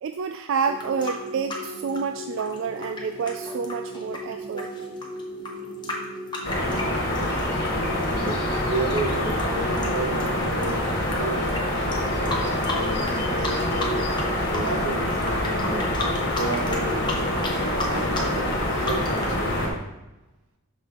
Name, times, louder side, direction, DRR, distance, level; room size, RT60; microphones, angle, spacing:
voice 1, 0.0-4.7, right 6 dB, 60° right, 7 dB, 0.3 m, -29 dB
sound 1, 0.6-7.7 8.0-11.2 11.5-11.6 11.9-13.2 13.4-14.2 14.5-19.4, left 2 dB, 20° left, 0.9 m, -34 dB
sound 2, 0.7-19.7, left 1 dB, 35° right, 0.7 m, -37 dB
voice 2, 4.5-4.9 8.2-11.6 12.0-14.2 14.5-15.9 16.3-17.2 17.6-19.9, right 2 dB, 85° right, 4 dB, 1.1 m, -32 dB
sound 3, 6.4-19.7, left 1 dB, 45° left, 1.6 m, -26 dB
6.2 x 5.5 x 3.6 m, 1.0 s
head